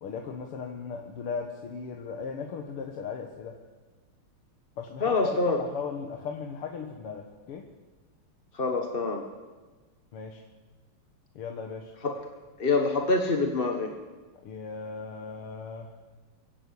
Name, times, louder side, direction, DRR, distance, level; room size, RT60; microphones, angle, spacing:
voice 1, 0.0-3.5 4.8-7.7 10.1-10.4 11.4-11.9 14.4-15.9, left 5 dB, 90° left, 2 dB, 2.3 m, -37 dB
voice 2, 5.0-5.6 8.5-9.2 12.0-12.2 12.6-13.9, left 3 dB, 30° left, 4 dB, 1.2 m, -26 dB
23.5 x 15.5 x 8.4 m, 1.3 s
omnidirectional pair, 2.4 m